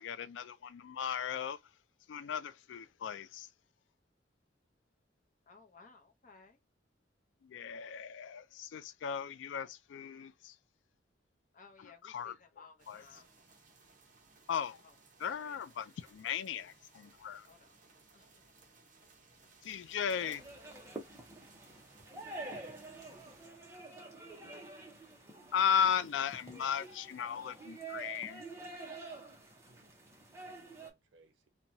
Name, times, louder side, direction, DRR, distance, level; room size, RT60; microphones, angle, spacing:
voice 1, 0.0-1.6 2.1-3.5 7.4-10.6 11.8-13.2 14.5-14.8 15.2-17.5 19.6-20.4 25.5-28.4, left 8 dB, 75° left, 0.3 m, -36 dB
voice 2, 5.5-6.6 11.5-13.3 14.8-14.9 15.2-15.6 17.5-17.8 18.1-18.4, left 4 dB, 45° left, 0.7 m, -59 dB
sound 1, 12.8-23.5, right 3 dB, 45° right, 0.8 m, -62 dB
sound 2, 20.1-30.9, right 2 dB, 15° right, 0.7 m, -48 dB
voice 3, 23.1-23.5 23.7-24.8 29.6-29.9 30.4-31.5, right 4 dB, 85° right, 0.6 m, -68 dB
2.8 x 2.2 x 2.6 m
head